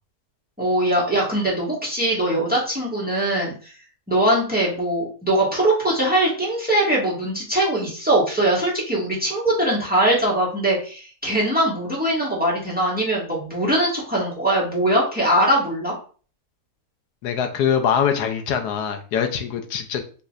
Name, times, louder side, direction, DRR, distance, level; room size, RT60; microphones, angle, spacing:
voice 1, 0.6-3.7 4.1-15.9, right 1 dB, 5° right, -5 dB, 1.5 m, -21 dB
voice 2, 17.2-20.0, left 8 dB, 85° left, 6 dB, 1.2 m, -23 dB
5.4 x 3.2 x 2.4 m, 0.39 s
omnidirectional pair, 1.7 m